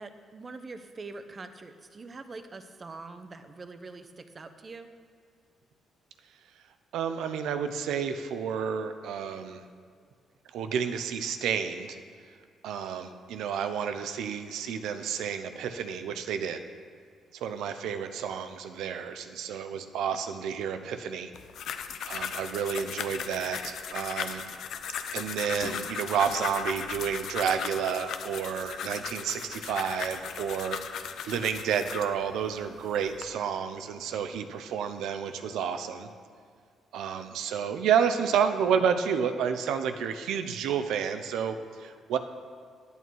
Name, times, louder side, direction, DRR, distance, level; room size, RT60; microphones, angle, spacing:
voice 1, 0.0-4.9, right 3 dB, 35° right, 9 dB, 0.8 m, -44 dB
voice 2, 6.9-9.6 10.5-12.0 12.6-16.6 17.3-21.3 22.1-24.4 25.1-36.1 36.9-42.2, right 7 dB, 85° right, 9 dB, 0.7 m, -30 dB
sound 1, 21.3-32.1 32.8-33.2, left 7 dB, 70° left, 0.7 m, -37 dB
10.5 x 8.3 x 4.7 m, 2.1 s
cardioid pair, 90°, 0 cm